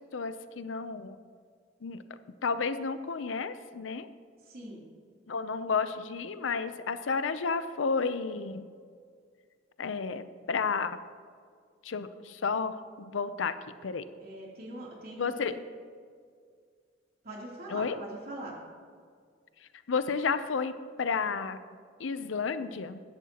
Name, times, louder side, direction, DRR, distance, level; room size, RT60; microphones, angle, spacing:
voice 1, 0.1-1.2 1.8-2.0 2.4-4.1 5.3-8.7 9.8-11.0 11.8-13.5 13.8-14.0 15.2-15.5 17.7-18.0 19.9-20.7 21.0-21.6 22.0-23.0, left 5 dB, 90° left, 12 dB, 0.6 m, -31 dB
voice 2, 4.4-4.8 14.2-15.5 17.2-18.6, right 1 dB, 55° right, -3 dB, 3.0 m, -42 dB
15.5 x 11.0 x 2.9 m, 2.1 s
head